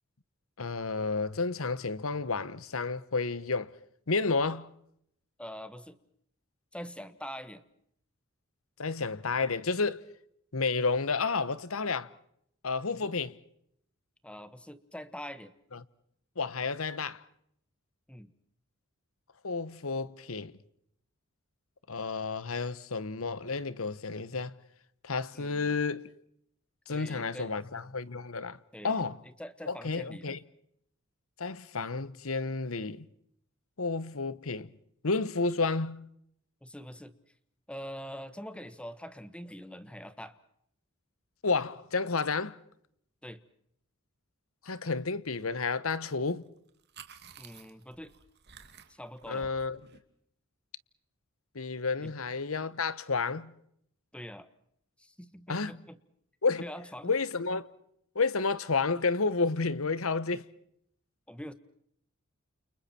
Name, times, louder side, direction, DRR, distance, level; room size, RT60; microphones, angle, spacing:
voice 1, 0.6-3.7 4.1-4.7 8.8-10.0 10.5-12.1 12.6-13.4 16.4-17.2 19.4-20.5 21.9-24.5 25.0-26.1 26.9-28.6 28.8-29.2 29.7-30.4 31.4-33.0 33.8-34.7 35.0-36.1 41.4-42.6 44.6-46.5 49.3-49.8 51.5-53.5 55.5-55.7 56.4-56.6 57.0-57.7 58.1-60.5, left 4 dB, 80° left, 1.2 m, -31 dB
voice 2, 5.4-6.0 6.7-7.6 12.9-13.1 14.2-15.5 18.1-18.3 25.3-25.8 26.9-27.6 28.7-30.4 36.6-37.1 37.7-40.4 43.2-43.4 47.4-48.1 48.9-49.5 52.0-52.1 54.1-54.5 55.0-56.0 56.6-57.2 61.3-61.5, equal, 5° left, 1.4 m, -44 dB
sound 1, 45.9-46.2 46.4-50.0, right 6 dB, 55° right, 2.5 m, -53 dB
30.0 x 29.5 x 4.5 m
head